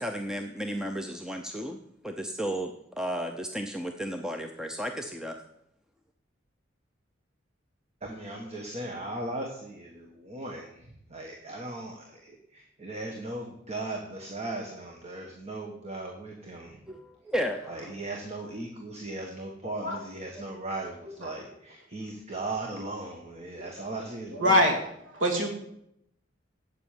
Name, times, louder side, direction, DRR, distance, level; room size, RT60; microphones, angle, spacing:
voice 1, 0.0-1.8 2.0-2.7 3.0-5.4 16.9-17.9, equal, 5° right, 4 dB, 0.6 m, -33 dB
voice 2, 8.0-16.8 17.7-24.7, right 2 dB, 35° right, 1 dB, 1.5 m, -38 dB
voice 3, 24.4-24.7 25.1-25.5, left 1 dB, 75° right, 3 dB, 2.2 m, -22 dB
8.1 x 8.1 x 9.1 m, 0.76 s
head